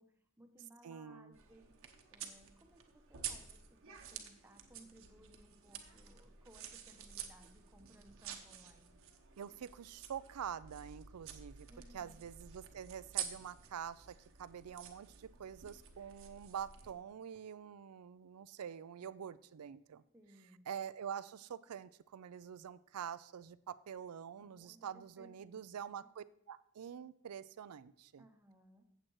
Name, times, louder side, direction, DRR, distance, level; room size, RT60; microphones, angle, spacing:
voice 1, 0.0-1.7 2.1-9.0 11.7-12.2 20.1-20.7 24.4-26.1 28.2-28.8, right 1 dB, 10° right, 5 dB, 0.8 m, -62 dB
voice 2, 0.8-1.3 9.4-11.7 11.9-20.0 20.7-28.2, right 8 dB, 90° right, 17 dB, 0.4 m, -46 dB
sound 1, 1.3-16.9, right 9 dB, 65° right, 1.0 m, -50 dB
15.0 x 7.6 x 3.1 m, 0.72 s
head